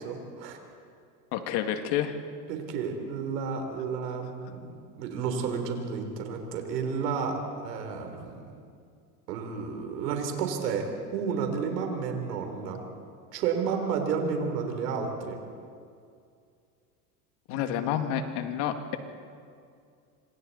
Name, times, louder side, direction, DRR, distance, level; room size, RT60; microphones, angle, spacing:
voice 1, 0.0-0.6 2.5-8.5 9.3-10.9 11.1-12.8 13.3-15.4, right 6 dB, 85° right, 4 dB, 3.5 m, -31 dB
voice 2, 1.3-2.1 17.5-19.0, left 9 dB, 55° left, 6 dB, 2.2 m, -29 dB
27.0 x 26.0 x 4.1 m, 2.3 s
supercardioid pair, 105°, 48 cm